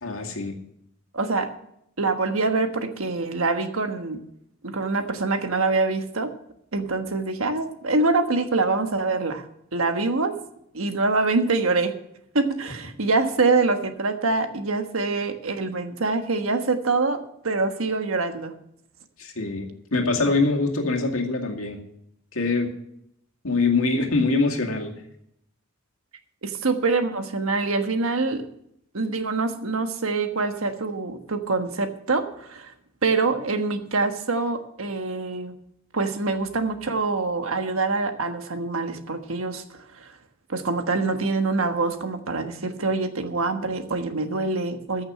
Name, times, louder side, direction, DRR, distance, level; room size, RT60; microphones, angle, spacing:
voice 1, 0.0-0.5 19.2-21.8 22.3-22.7 23.4-24.9, left 3 dB, 75° left, 2 dB, 2.3 m, -24 dB
voice 2, 1.1-1.5 2.0-4.2 4.6-6.3 6.7-9.5 9.7-10.4 10.7-11.9 12.3-18.5 26.4-28.5 28.9-32.7 33.0-35.6 35.9-39.6 40.0-40.1 40.5-45.0, right 3 dB, 75° right, 7 dB, 1.4 m, -25 dB
14.5 x 6.6 x 7.4 m, 0.75 s
head